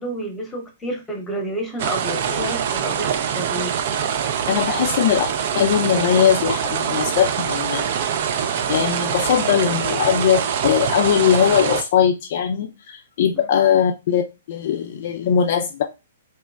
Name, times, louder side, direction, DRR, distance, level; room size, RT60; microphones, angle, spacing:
voice 1, 0.0-3.8 4.7-5.0, right 1 dB, 15° left, 3 dB, 0.8 m, -30 dB
sound 1, 1.8-11.8, right 8 dB, 55° right, 0.3 m, -24 dB
voice 2, 4.5-5.3 5.5-7.8 8.7-15.8, left 9 dB, 55° left, 3 dB, 0.3 m, -20 dB
2.8 x 2.2 x 2.2 m, 0.27 s
hypercardioid pair, 125°, 0 cm